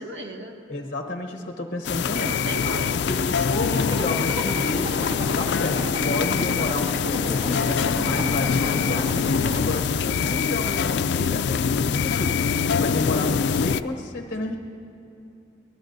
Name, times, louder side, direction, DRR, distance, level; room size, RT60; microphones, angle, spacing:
voice 1, 0.0-0.6 2.1-3.6, right 1 dB, 75° right, 1 dB, 1.8 m, -35 dB
voice 2, 0.7-2.3 3.1-5.0 5.3-7.6 8.0-9.1 9.5-12.4 12.7-14.6, left 2 dB, 45° left, 2 dB, 1.0 m, -30 dB
sound 1, 1.8-13.8, left 6 dB, 70° left, 0.3 m, -24 dB
Zipper (clothing), 3.7-9.6, left 1 dB, 30° right, 1.9 m, -32 dB
24.0 x 19.5 x 2.6 m, 2.8 s
head